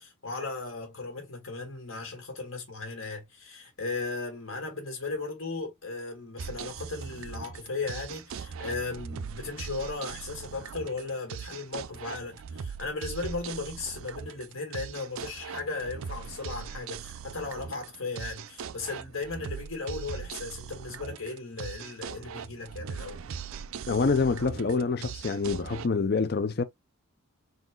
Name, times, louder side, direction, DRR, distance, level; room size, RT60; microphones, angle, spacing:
voice 1, 0.0-23.2, left 3 dB, 70° left, 2.0 m, -36 dB
sound 1, 6.4-25.9, right 7 dB, 70° right, 0.4 m, -40 dB
voice 2, 23.9-26.6, left 4 dB, 45° left, 0.5 m, -26 dB
4.1 x 2.5 x 3.7 m
head